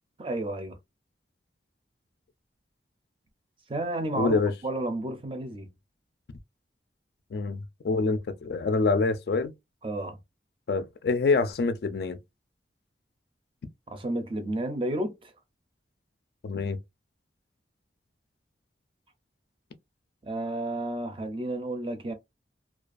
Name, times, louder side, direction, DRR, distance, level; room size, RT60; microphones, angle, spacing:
voice 1, 0.2-0.8 3.7-5.7 9.8-10.2 13.9-15.3 20.3-22.1, right 1 dB, 30° right, 0.4 m, -31 dB
voice 2, 4.1-4.5 7.3-9.5 10.7-12.2 16.4-16.8, left 4 dB, 60° left, 0.3 m, -26 dB
2.4 x 2.3 x 2.4 m
head